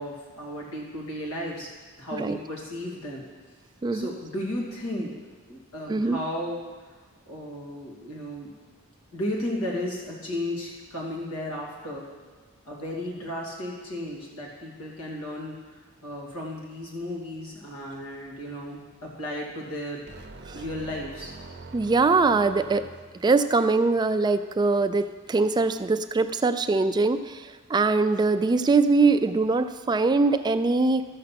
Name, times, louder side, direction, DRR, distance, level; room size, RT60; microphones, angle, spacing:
voice 1, 0.0-1.7 2.0-3.2 3.9-5.1 5.5-6.6 7.3-8.5 9.1-12.1 12.6-15.5 16.0-20.0 20.5-21.3, left 1 dB, 85° left, -3 dB, 2.7 m, -34 dB
sound 1, 20.1-23.3, right 2 dB, 50° right, 0.6 m, -44 dB
voice 2, 21.7-22.8 23.2-31.1, right 3 dB, 20° right, 10 dB, 0.3 m, -22 dB
12.5 x 6.7 x 5.9 m, 1.4 s
head